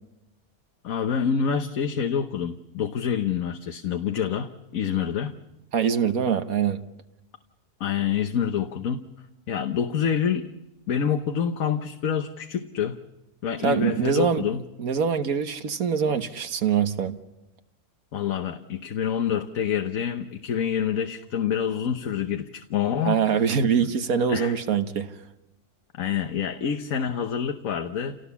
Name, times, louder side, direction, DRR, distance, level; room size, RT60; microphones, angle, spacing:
voice 1, 0.8-5.3 7.8-9.1 9.5-10.5 10.9-13.0 13.4-14.6 18.1-23.2 24.3-24.6 26.0-28.2, left 8 dB, 65° left, 1.4 m, -27 dB
voice 2, 5.7-6.8 13.6-14.4 14.8-17.2 23.0-25.1, right 7 dB, 70° right, 1.5 m, -24 dB
29.0 x 18.0 x 7.1 m
omnidirectional pair, 1.6 m